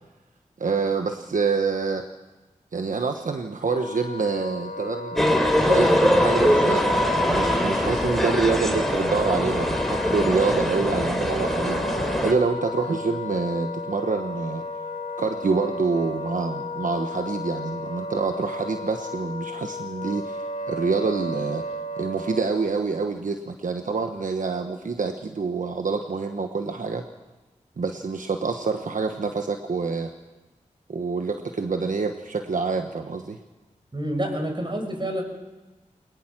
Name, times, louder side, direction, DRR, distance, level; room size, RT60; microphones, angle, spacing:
voice 1, 0.6-2.0 2.7-5.3 5.7-6.8 7.3-11.8 12.2-14.6 15.2-21.6 22.0-27.0 27.8-30.1 30.9-33.4, right 4 dB, 80° right, 5 dB, 1.2 m, -26 dB
Wind instrument woodwind instrument, 3.6-22.7, left 1 dB, 80° left, 1.7 m, -33 dB
sound 1, 5.2-12.3, equal, ahead, 3.5 m, -22 dB
voice 2, 33.9-35.2, right 1 dB, 35° right, 4 dB, 5.5 m, -28 dB
22.0 x 20.0 x 6.1 m, 1.2 s
cardioid pair, 50°, 13 cm